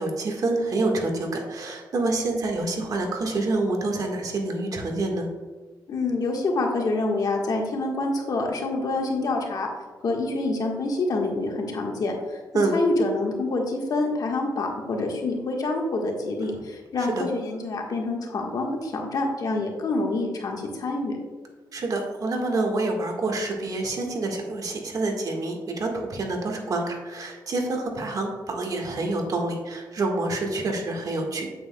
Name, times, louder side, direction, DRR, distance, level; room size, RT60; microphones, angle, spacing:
voice 1, 0.0-5.3 12.5-12.8 17.0-17.2 21.7-31.5, right 2 dB, 55° right, 2 dB, 1.6 m, -27 dB
voice 2, 5.9-9.7 10.0-12.4 12.7-21.2, left 2 dB, 55° left, 1 dB, 1.4 m, -27 dB
8.7 x 7.9 x 2.3 m, 1.3 s
cardioid pair, 90°, 8 cm